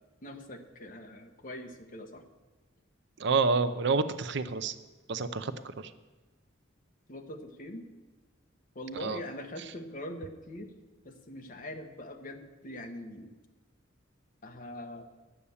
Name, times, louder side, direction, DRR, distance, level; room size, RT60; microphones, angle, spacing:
voice 1, 0.2-2.2 7.1-7.8 8.7-10.7 11.0-13.3 14.4-15.0, left 1 dB, 45° left, 4 dB, 1.3 m, -42 dB
voice 2, 3.2-4.8 5.1-5.9 9.0-9.2, right 4 dB, 60° right, 12 dB, 0.6 m, -28 dB
11.0 x 8.5 x 7.1 m, 1.2 s
head